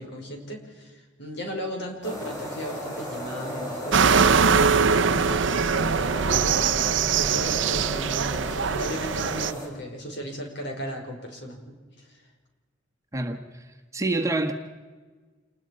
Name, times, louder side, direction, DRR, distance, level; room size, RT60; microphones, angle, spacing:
voice 1, 0.0-11.7, equal, 60° left, 2 dB, 5.6 m, -36 dB
sound 1, 2.0-9.7, left 1 dB, 20° left, 7.4 m, -35 dB
sound 2, 3.9-9.5, right 6 dB, 70° right, 0.6 m, -22 dB
voice 2, 13.1-13.6 13.9-14.5, right 2 dB, 15° right, 4 dB, 1.5 m, -27 dB
28.5 x 20.5 x 5.4 m, 1.4 s
head